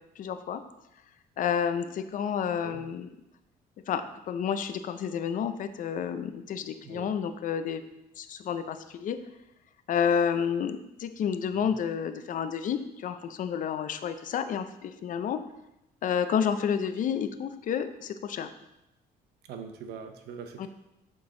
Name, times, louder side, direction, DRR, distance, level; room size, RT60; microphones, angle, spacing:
voice 1, 0.2-0.6 1.4-3.1 3.9-4.0 4.3-7.8 8.2-9.2 9.9-15.4 16.0-18.5 20.6-20.7, left 7 dB, 50° left, 10 dB, 0.5 m, -30 dB
voice 2, 19.5-20.7, right 6 dB, 75° right, 7 dB, 0.8 m, -42 dB
8.5 x 3.8 x 3.8 m, 0.90 s
cardioid pair, 110°, 17 cm